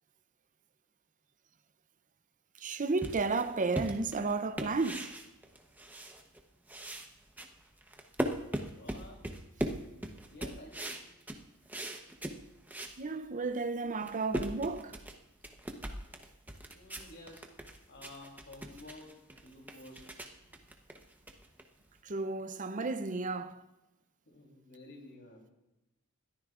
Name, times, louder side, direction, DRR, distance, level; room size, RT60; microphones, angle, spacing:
voice 1, 2.6-5.2 13.0-15.0 22.0-23.6, right 3 dB, 35° right, 0.6 m, -33 dB
sound 1, 3.0-6.4 6.7-13.0 13.4-13.5 13.9-22.0, right 1 dB, 10° right, 0.9 m, -40 dB
voice 2, 8.8-9.3 10.3-10.9 16.7-17.5 17.9-20.1 24.3-25.5, left 2 dB, 55° left, 3.3 m, -52 dB
21.5 x 13.5 x 2.5 m
head